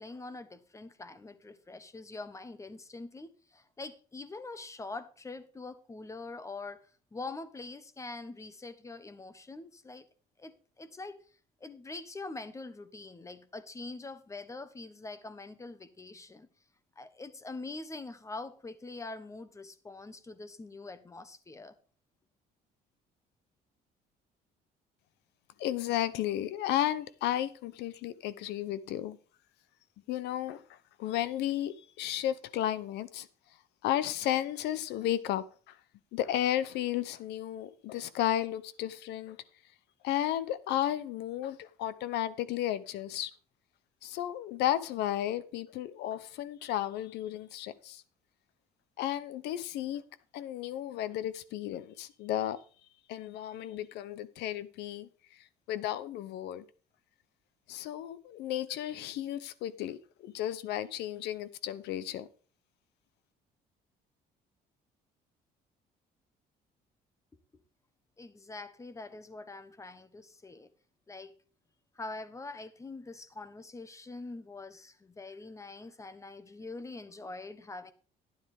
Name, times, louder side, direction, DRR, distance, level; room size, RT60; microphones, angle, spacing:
voice 1, 0.0-6.8 7.1-10.1 10.4-11.2 11.6-16.5 17.0-21.7 68.2-70.7 71.1-71.3 71.9-77.9, left 3 dB, 20° left, 1.2 m, -44 dB
voice 2, 25.6-29.2 30.1-33.3 33.8-35.8 36.1-39.4 40.0-43.3 44.0-48.0 49.0-50.0 50.3-52.6 53.1-56.6 57.7-62.3, left 12 dB, 85° left, 0.9 m, -33 dB
11.5 x 10.0 x 3.6 m
cardioid pair, 110°, 17 cm